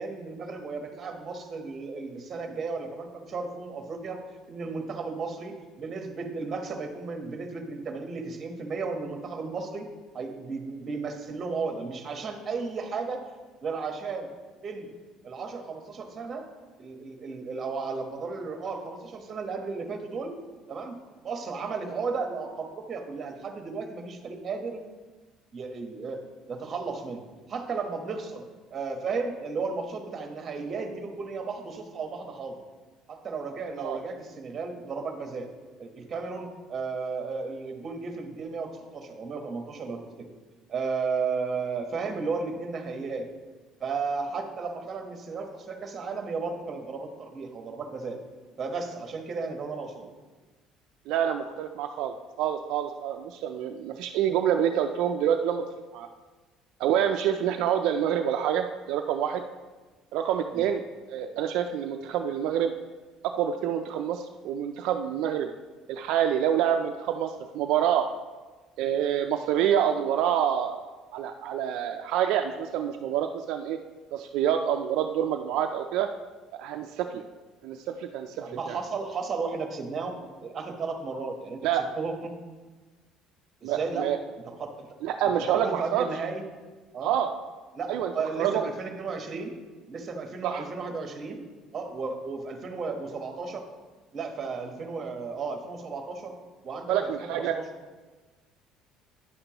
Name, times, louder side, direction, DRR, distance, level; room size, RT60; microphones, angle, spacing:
voice 1, 0.0-4.2 4.5-9.9 10.1-13.2 13.6-14.3 14.6-14.9 15.2-16.5 16.8-20.4 20.7-24.8 25.5-27.2 27.5-28.4 28.7-32.6 33.1-35.5 35.8-40.3 40.7-43.3 43.8-48.2 48.6-50.1 60.5-60.6 78.4-80.2 80.4-81.6 81.9-82.3 83.6-84.1 84.4-84.9 85.3-86.4 86.9-87.1 87.7-89.6 89.9-91.4 91.7-93.7 94.1-96.3 96.6-97.7, right 4 dB, 35° right, 4 dB, 1.1 m, -34 dB
voice 2, 51.1-55.6 55.9-56.1 56.8-59.4 60.1-60.8 61.1-62.7 63.2-65.5 65.9-68.1 68.8-70.8 71.1-73.8 74.1-76.1 76.5-77.2 77.6-78.8 81.6-81.8 83.6-84.2 85.0-86.1 87.0-87.3 87.9-88.1 88.4-88.7 90.4-90.6 96.9-97.6, right 9 dB, 75° right, 5 dB, 0.4 m, -27 dB
9.8 x 6.8 x 2.9 m, 1.3 s
cardioid pair, 120°, 0 cm